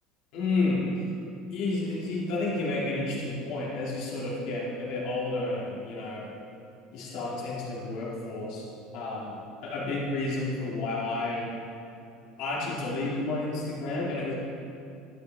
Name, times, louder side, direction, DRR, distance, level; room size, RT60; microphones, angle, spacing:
voice 1, 0.3-0.8 1.5-6.2 6.9-8.6 8.9-9.3 9.6-11.5 12.4-14.3, left 2 dB, 55° left, -5 dB, 2.4 m, -31 dB
12.0 x 8.3 x 3.5 m, 2.7 s
cardioid pair, 175°, 0 cm